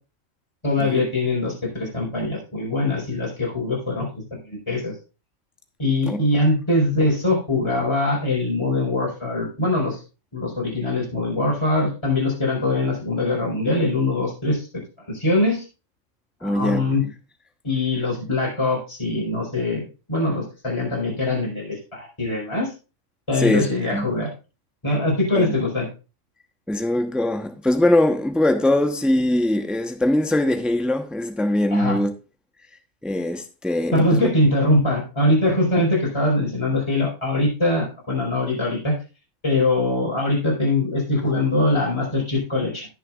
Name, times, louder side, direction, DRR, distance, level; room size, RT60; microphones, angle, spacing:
voice 1, 0.6-4.9 5.8-10.0 10.3-14.7 15.1-15.6 16.4-17.0 17.6-22.7 23.3-24.3 24.8-25.9 31.7-32.0 33.9-39.0 39.4-42.9, left 2 dB, 20° left, 4.6 m, -22 dB
voice 2, 16.4-16.9 23.4-24.0 25.3-25.4 26.7-32.1 33.0-34.3, left 1 dB, ahead, 0.8 m, -21 dB
17.0 x 6.6 x 2.4 m
omnidirectional pair, 1.4 m